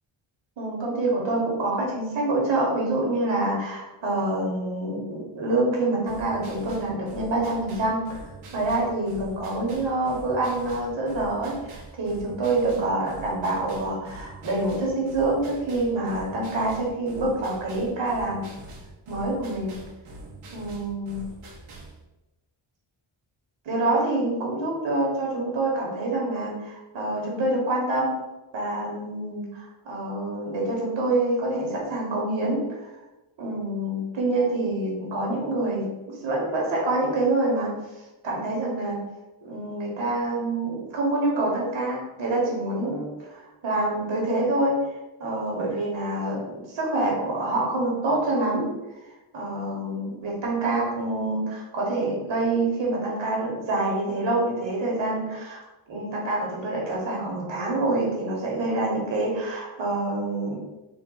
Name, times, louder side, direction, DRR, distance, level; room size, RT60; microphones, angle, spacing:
voice 1, 0.6-8.2 8.5-18.5 19.1-19.8 20.5-21.2 23.6-28.1 28.5-32.9 33.4-37.7 38.2-39.0 39.4-44.9 45.2-48.7 49.3-55.6 55.9-60.6, right 2 dB, 65° right, -3 dB, 1.3 m, -26 dB
sound 1, 6.1-22.0, right 2 dB, 85° right, 1.0 m, -44 dB
4.0 x 2.1 x 3.8 m, 1.0 s
wide cardioid pair, 135°, 49 cm